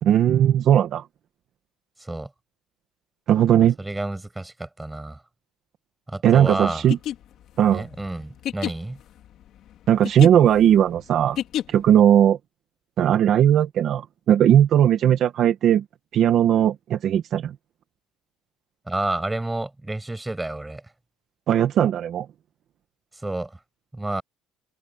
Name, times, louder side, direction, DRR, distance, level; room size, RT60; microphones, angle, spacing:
voice 1, 0.0-1.1 3.3-3.7 6.2-7.0 7.6-7.8 9.9-11.4 11.7-12.4 13.0-15.8 16.1-17.5 21.5-22.3, right 10 dB, 45° right, 1.5 m, -18 dB
voice 2, 2.0-2.3 3.8-5.2 6.1-6.9 7.7-9.0 18.9-20.8 23.2-23.6 23.9-24.2, right 2 dB, 10° right, 7.7 m, -30 dB
sound 1, 6.7-12.0, left 11 dB, 50° left, 3.7 m, -31 dB
cardioid pair, 150°, 0 cm